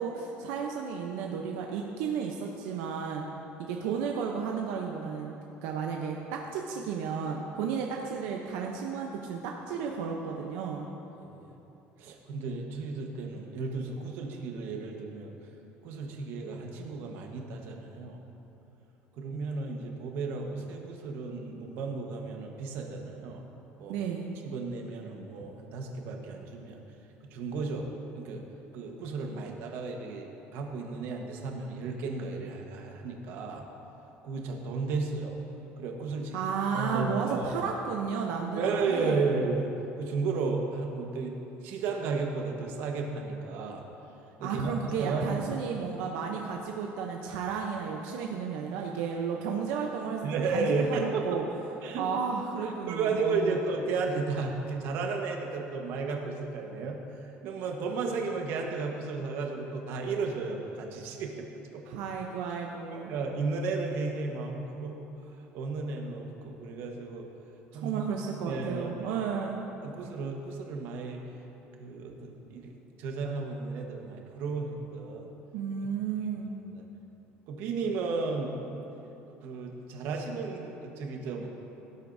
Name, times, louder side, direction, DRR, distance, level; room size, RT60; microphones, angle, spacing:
voice 1, 0.0-3.3 3.6-5.3 5.6-10.9 23.9-24.3 36.3-39.3 44.4-51.4 52.0-53.6 61.9-63.1 67.7-69.7 75.5-76.5, right 6 dB, 90° right, 1 dB, 0.7 m, -33 dB
voice 2, 11.2-11.6 12.0-15.3 15.8-18.2 19.1-23.4 23.8-24.0 24.4-26.8 27.2-27.9 28.1-28.4 28.7-33.7 34.2-35.4 35.8-36.4 36.7-37.5 38.6-39.7 40.0-41.3 41.6-43.8 44.4-44.7 45.0-45.6 50.2-51.4 51.8-52.0 52.9-61.4 61.7-61.8 63.1-65.1 65.5-67.3 67.7-68.0 68.4-69.2 69.8-71.2 71.8-75.3 76.7-76.8 77.5-78.5 79.4-81.5, right 4 dB, 60° right, 2 dB, 1.2 m, -33 dB
17.0 x 8.2 x 2.7 m, 3.0 s
cardioid pair, 160°, 4 cm